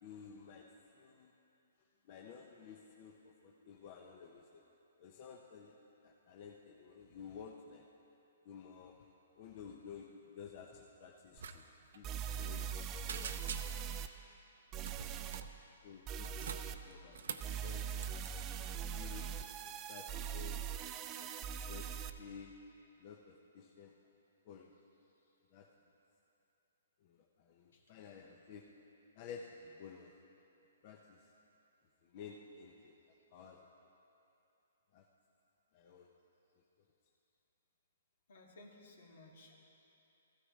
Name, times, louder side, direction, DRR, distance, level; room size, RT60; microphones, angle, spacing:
voice 1, 0.0-1.3 2.0-4.7 5.0-7.9 8.4-9.1 9.4-13.4 15.8-17.3 17.6-17.9 18.5-20.7 21.1-22.7 23.0-24.0 24.4-24.7 25.5-25.7 27.0-28.8 29.2-30.2 30.8-31.3 32.0-33.7 34.9-35.1 35.7-36.1, left 6 dB, 40° left, 1 dB, 0.7 m, -53 dB
sound 1, 11.4-11.5 12.0-14.1 14.7-15.4 16.1-16.8 17.4-22.1, right 8 dB, 25° right, 0.4 m, -41 dB
sound 2, 11.4-11.6 11.8-12.0 12.4-12.8 13.1-14.0 14.8-15.5 16.1-17.5 18.0-18.3, right 6 dB, 70° right, 0.6 m, -45 dB
voice 2, 38.3-39.5, left 2 dB, 70° left, -1 dB, 2.1 m, -58 dB
15.0 x 13.0 x 3.2 m, 2.9 s
hypercardioid pair, 150°, 0 cm